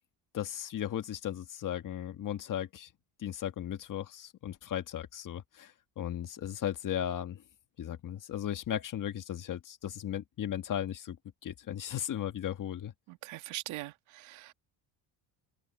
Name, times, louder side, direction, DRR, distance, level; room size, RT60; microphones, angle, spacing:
voice 1, 0.3-2.9 3.2-7.4 7.8-11.2 11.4-12.9, left 10 dB, 40° left, 1.7 m, -36 dB
voice 2, 13.1-14.5, right 17 dB, 85° right, 1.7 m, -42 dB
cardioid pair, 160°, 47 cm